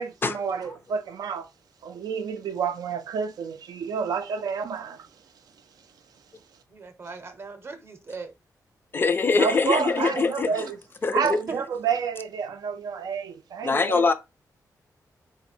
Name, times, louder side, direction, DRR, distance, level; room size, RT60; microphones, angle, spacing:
voice 1, 0.0-1.5 1.8-5.1 9.4-10.8 11.1-14.1, right 6 dB, 75° right, 0.4 m, -29 dB
voice 2, 6.7-8.3 9.8-10.1 10.5-10.6 11.1-11.6, right 4 dB, 40° right, 0.7 m, -39 dB
voice 3, 8.9-10.7 11.0-11.4 13.6-14.1, left 4 dB, 35° left, 0.4 m, -23 dB
4.0 x 2.1 x 4.2 m
wide cardioid pair, 170°, 7 cm